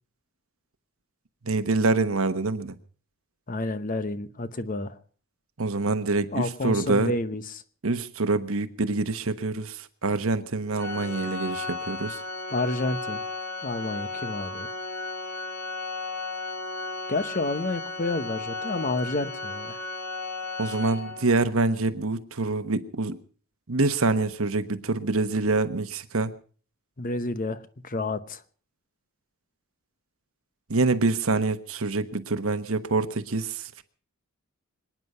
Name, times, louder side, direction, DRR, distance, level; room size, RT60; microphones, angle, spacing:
voice 1, 1.4-2.8 5.6-7.1 7.8-12.2 20.6-23.2 23.7-26.3 30.7-33.8, right 3 dB, 70° right, 10 dB, 1.2 m, -26 dB
voice 2, 3.5-4.9 6.3-7.6 12.5-13.2 13.6-14.7 17.1-19.8 27.0-28.4, left 2 dB, 40° left, 13 dB, 0.9 m, -30 dB
Organ, 10.8-21.5, left 3 dB, 75° left, 3.1 m, -34 dB
25.0 x 9.7 x 5.5 m, 0.43 s
head